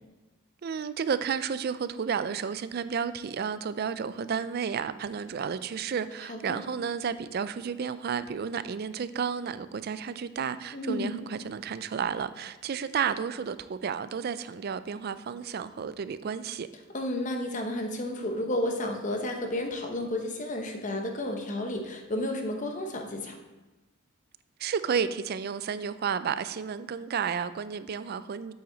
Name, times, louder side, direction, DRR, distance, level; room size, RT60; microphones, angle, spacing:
voice 1, 0.6-16.7 24.6-28.5, right 6 dB, 45° right, 0.3 m, -32 dB
voice 2, 6.3-6.6 10.7-11.2 16.9-23.4, left 1 dB, 35° left, 0.9 m, -32 dB
8.0 x 7.8 x 3.9 m
head